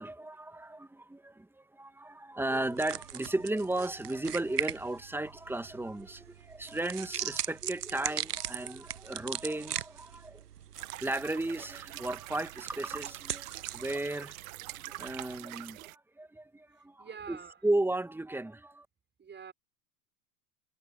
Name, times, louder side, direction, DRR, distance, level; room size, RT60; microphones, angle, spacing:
voice 1, 0.0-10.4 10.8-14.4 14.6-18.9, right 2 dB, 5° right, 2.5 m, -35 dB
sound 1, 2.5-15.4, right 10 dB, 80° right, 1.0 m, -40 dB
sound 2, 10.7-16.0, right 17 dB, 60° right, 2.1 m, -45 dB
voice 2, 17.0-17.6 19.2-19.5, right 6 dB, 25° right, 5.9 m, -45 dB
figure-of-eight pair, 85°, 46 cm